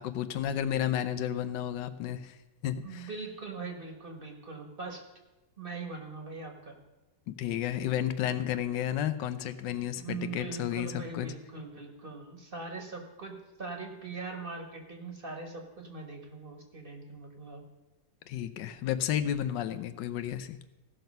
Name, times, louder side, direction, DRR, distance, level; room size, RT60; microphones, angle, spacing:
voice 1, 0.0-2.4 2.6-3.1 7.3-11.3 18.3-20.6, left 10 dB, 90° left, 11 dB, 1.4 m, -32 dB
voice 2, 2.8-5.0 5.6-6.8 9.9-17.6, right 4 dB, 35° right, 3 dB, 1.3 m, -41 dB
16.0 x 6.0 x 5.3 m, 1.0 s
omnidirectional pair, 1.9 m